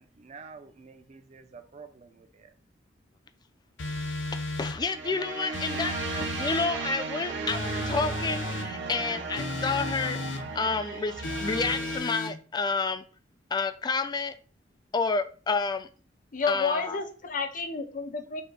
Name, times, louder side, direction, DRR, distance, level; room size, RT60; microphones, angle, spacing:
voice 1, 0.0-2.5, right 5 dB, 40° right, 0.5 m, -49 dB
sound 1, 3.8-4.8 5.5-6.7 7.5-8.7 9.4-10.4 11.2-12.3, left 3 dB, 85° left, 0.7 m, -34 dB
voice 2, 4.6-11.1 11.4-13.1 13.5-14.3 14.9-15.9 16.5-17.0, left 4 dB, 25° left, 0.3 m, -30 dB
sound 2, 4.7-12.0, right 4 dB, 75° right, 0.9 m, -35 dB
voice 3, 16.3-18.4, left 4 dB, 45° left, 0.7 m, -30 dB
5.6 x 2.1 x 3.8 m
head